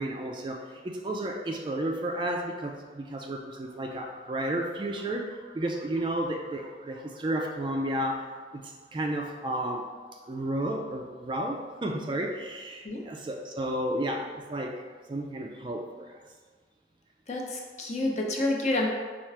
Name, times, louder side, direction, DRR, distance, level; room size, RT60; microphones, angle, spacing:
voice 1, 0.0-9.9 10.3-14.7 15.1-16.2, right 1 dB, 25° right, 2 dB, 0.3 m, -32 dB
voice 2, 17.3-18.9, left 2 dB, 40° left, -1 dB, 0.6 m, -28 dB
4.3 x 2.4 x 4.6 m, 1.5 s
head